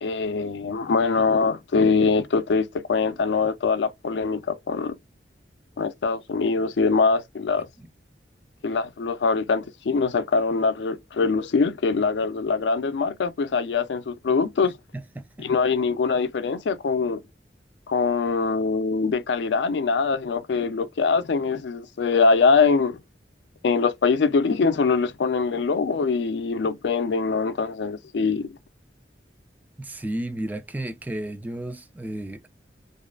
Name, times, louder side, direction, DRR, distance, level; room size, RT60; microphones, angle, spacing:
voice 1, 0.0-5.0 5.8-7.7 8.6-14.7 15.4-17.2 17.9-23.0 23.6-28.6, left 4 dB, 80° left, 0.4 m, -23 dB
voice 2, 14.9-15.5 29.8-32.5, right 1 dB, 10° right, 0.3 m, -33 dB
2.5 x 2.3 x 2.3 m
head